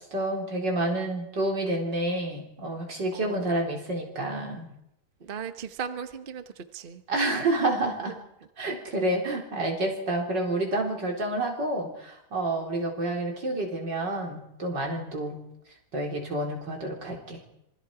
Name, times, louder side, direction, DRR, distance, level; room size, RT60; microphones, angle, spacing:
voice 1, 0.0-4.7 7.1-8.1 8.6-15.4 15.9-17.4, right 1 dB, 75° right, 0 dB, 4.8 m, -29 dB
voice 2, 3.1-3.5 5.2-7.0 8.0-8.1 8.6-8.7, right 7 dB, 35° right, 9 dB, 1.0 m, -37 dB
26.0 x 22.0 x 4.9 m, 0.82 s
omnidirectional pair, 1.9 m